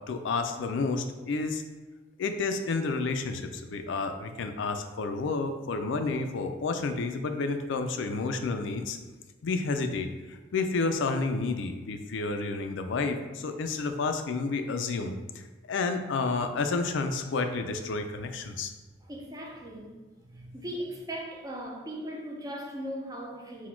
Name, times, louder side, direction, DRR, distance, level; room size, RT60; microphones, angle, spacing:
voice 1, 0.0-1.6 2.2-9.0 9.4-15.2 15.7-18.7, left 3 dB, 70° left, 0.4 m, -30 dB
voice 2, 19.0-20.0 20.3-23.7, equal, 20° right, 0.5 m, -38 dB
4.1 x 2.2 x 4.3 m
head